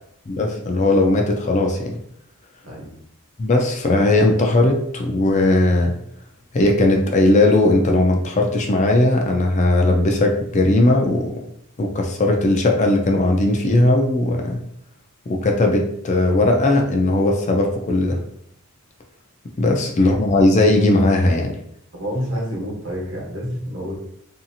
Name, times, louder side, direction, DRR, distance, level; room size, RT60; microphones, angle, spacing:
voice 1, 0.3-2.0 3.4-5.9 6.5-11.4 11.8-14.6 15.3-18.2 19.6-21.6, left 2 dB, 35° left, 2 dB, 0.4 m, -18 dB
voice 2, 22.0-24.0, equal, 60° right, -3 dB, 1.0 m, -28 dB
2.7 x 2.4 x 2.7 m, 0.69 s
head